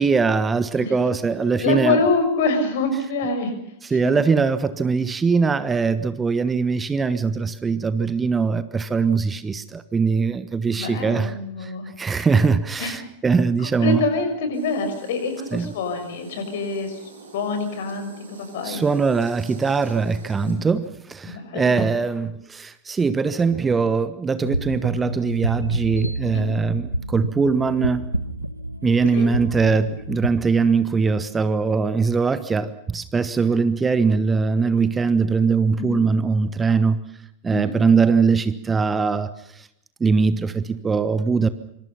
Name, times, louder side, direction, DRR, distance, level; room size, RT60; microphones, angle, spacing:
voice 1, 0.0-2.0 3.8-11.7 12.0-14.0 15.5-15.7 18.6-28.1 28.8-37.0 37.4-39.7 40.0-41.5, right 5 dB, 15° right, 13 dB, 1.2 m, -21 dB
voice 2, 1.6-3.5 10.7-11.9 12.8-12.9 13.6-17.0 17.3-18.8 20.4-20.6 21.2-21.9 26.3-26.4 29.1-29.3 35.8-36.0 37.5-37.7, left 3 dB, 55° left, 8 dB, 6.2 m, -25 dB
sound 1, 14.5-20.5, right 4 dB, 70° right, 5.8 m, -46 dB
sound 2, 24.4-30.3, right 1 dB, 90° right, 1.1 m, -29 dB
26.5 x 25.5 x 5.8 m, 0.75 s
figure-of-eight pair, 90°, 0 cm